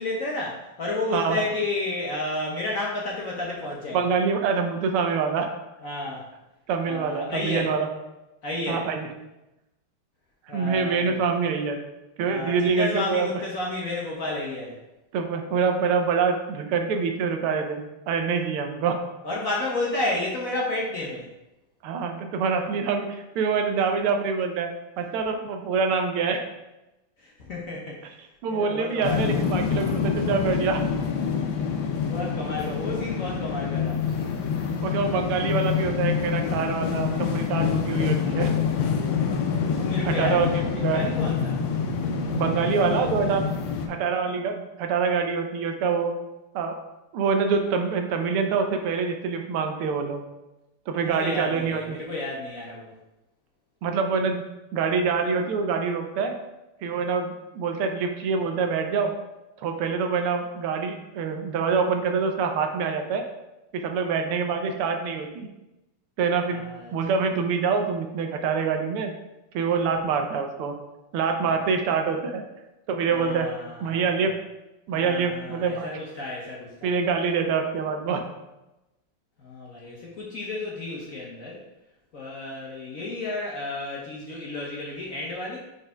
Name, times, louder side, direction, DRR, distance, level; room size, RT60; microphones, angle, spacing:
voice 1, 0.0-4.0 5.8-6.2 6.8-7.7 8.4-8.9 10.5-11.2 12.3-14.8 19.2-21.3 27.2-28.0 28.5-29.4 32.1-34.2 39.7-41.6 51.0-52.9 66.5-66.9 71.4-71.5 73.1-74.2 74.9-76.9 79.4-81.6 82.1-85.6, left 2 dB, 55° left, -4 dB, 1.0 m, -31 dB
voice 2, 3.9-5.5 6.7-7.9 8.7-9.1 10.5-11.8 12.2-13.3 15.1-19.0 21.8-24.7 25.0-26.4 28.4-30.8 34.8-38.5 40.0-41.0 42.3-43.4 43.9-46.1 46.5-46.8 47.1-50.2 50.9-52.0 53.8-54.4 54.7-56.3 56.8-59.1 59.6-63.2 63.7-65.5 66.2-69.1 69.5-70.7 71.1-72.4 72.9-73.5 73.8-74.4 74.9-75.9 76.8-78.2, right 5 dB, 80° right, 4 dB, 1.7 m, -25 dB
sound 1, 29.0-43.9, left 6 dB, 70° left, 1.4 m, -26 dB
4.7 x 4.5 x 5.0 m, 0.96 s
omnidirectional pair, 2.4 m